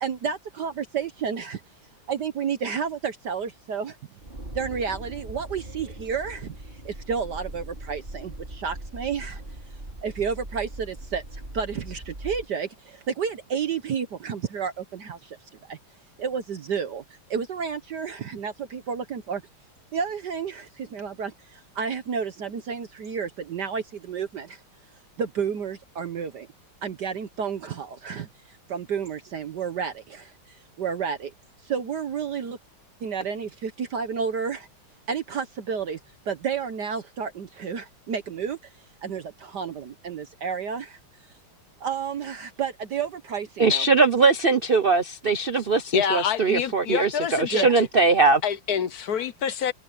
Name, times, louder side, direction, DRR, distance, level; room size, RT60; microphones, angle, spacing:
voice 1, 0.0-1.6 2.1-4.0 4.5-9.4 10.0-15.4 15.7-15.8 16.2-17.0 17.3-19.4 19.9-24.6 25.2-26.5 26.8-28.3 28.7-31.3 31.6-32.6 33.0-34.7 35.1-36.0 36.3-38.6 39.0-41.0 41.8-43.9 47.5-47.8, right 6 dB, 60° right, 1.5 m, -31 dB
sound 1, 4.2-12.5, right 1 dB, 25° right, 4.3 m, -40 dB
voice 2, 43.6-48.4, right 4 dB, 75° right, 0.5 m, -21 dB
voice 3, 45.9-47.9 48.4-49.7, left 8 dB, 55° left, 1.2 m, -26 dB
omnidirectional pair, 2.3 m